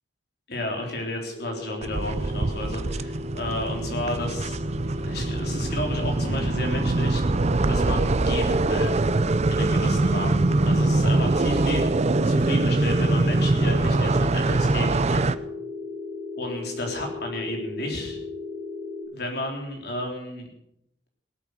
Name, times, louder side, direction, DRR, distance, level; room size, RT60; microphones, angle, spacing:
voice 1, 0.5-4.6 4.8-7.4 7.7-9.0 9.5-12.0 12.3-15.3 16.4-18.2 19.1-20.5, left 1 dB, 60° left, 1 dB, 3.8 m, -32 dB
sound 1, 1.3-19.0, left 3 dB, 75° left, 5.5 m, -37 dB
sound 2, 1.8-15.4, right 2 dB, 35° right, 0.5 m, -23 dB
18.0 x 8.6 x 6.7 m, 0.78 s
head